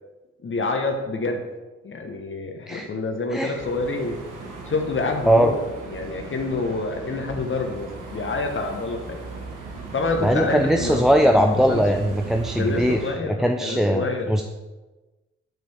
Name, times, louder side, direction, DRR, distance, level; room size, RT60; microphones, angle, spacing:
voice 1, 0.4-1.4 1.8-4.2 4.6-5.6 5.9-9.2 9.9-11.8 12.5-14.3, left 3 dB, 40° left, 4 dB, 1.0 m, -27 dB
sound 1, 3.5-13.1, right 3 dB, 70° right, 1.3 m, -37 dB
voice 2, 10.2-14.4, equal, ahead, 4 dB, 0.4 m, -20 dB
7.6 x 5.1 x 3.4 m, 1.2 s
hypercardioid pair, 40°, 32 cm